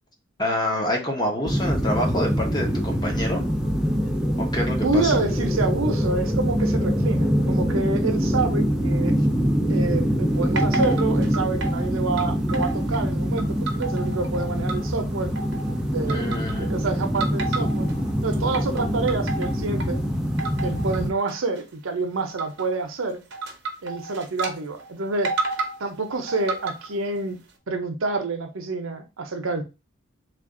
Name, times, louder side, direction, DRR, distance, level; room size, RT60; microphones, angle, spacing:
voice 1, 0.4-3.4 4.4-5.1 16.1-16.7, left 1 dB, 20° left, 0.9 m, -27 dB
sound 1, 1.5-21.1, equal, 5° right, 0.4 m, -24 dB
voice 2, 4.8-9.1 9.7-15.3 15.9-17.9 18.2-20.0 20.6-23.2 23.8-25.4 25.8-27.4 27.7-29.6, right 3 dB, 85° right, 0.7 m, -28 dB
sound 2, 10.6-11.8 12.2-13.1 13.4-15.0 15.4-15.8 16.1-16.8 17.2-18.0 18.3-20.0 20.4-21.0 21.3-21.6 22.4-22.7 23.3-24.5 24.8-24.9 25.3-25.8 26.3-26.9, right 3 dB, 60° right, 0.7 m, -31 dB
3.3 x 2.5 x 3.7 m
head